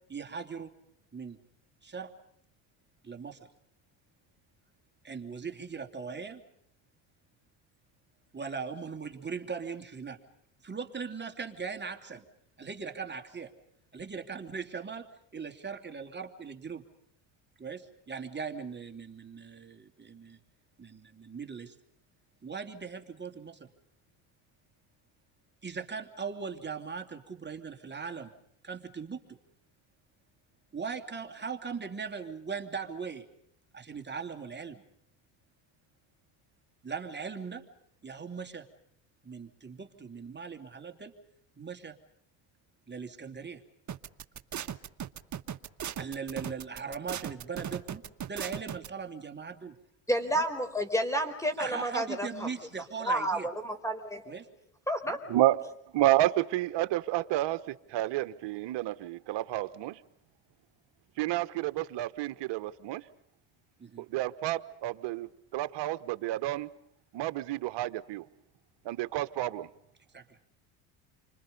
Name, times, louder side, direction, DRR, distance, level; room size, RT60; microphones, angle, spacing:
voice 1, 0.1-0.7 1.1-1.4 1.8-2.1 3.0-3.4 5.0-6.4 8.3-10.2 10.6-12.2 12.6-13.5 13.9-15.1 15.3-16.8 17.6-20.4 20.8-21.7 22.4-23.7 25.6-28.3 28.6-29.4 30.7-33.2 33.7-34.8 36.8-37.6 38.0-38.7 39.2-41.1 41.6-42.0 42.9-43.6 46.0-49.7 50.3-50.4 51.6-53.5 54.3-54.5 55.0-55.2 63.8-64.0 70.1-70.4, right 5 dB, 20° right, 2.8 m, -39 dB
sound 1, 43.9-48.9, right 9 dB, 35° right, 1.4 m, -37 dB
voice 2, 50.1-52.5 53.0-54.2 54.9-55.2, right 1 dB, 5° left, 4.4 m, -30 dB
voice 3, 55.9-60.0 61.2-63.0 64.0-66.7 67.1-68.3 68.8-69.7, right 15 dB, 65° right, 1.2 m, -30 dB
29.5 x 25.5 x 5.4 m
supercardioid pair, 85°, 47 cm